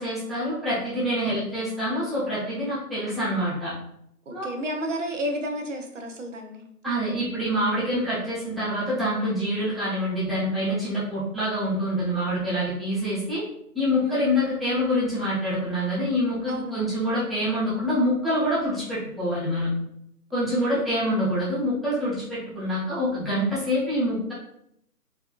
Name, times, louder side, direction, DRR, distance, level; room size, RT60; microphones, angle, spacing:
voice 1, 0.0-3.7 4.3-4.5 6.8-13.4 13.7-19.7 20.3-24.3, equal, ahead, -12 dB, 0.4 m, -26 dB
voice 2, 4.3-6.6 14.0-14.2 16.5-16.9 20.3-20.8, equal, 50° right, 3 dB, 0.6 m, -32 dB
3.5 x 2.3 x 2.4 m, 0.76 s
figure-of-eight pair, 160°, 48 cm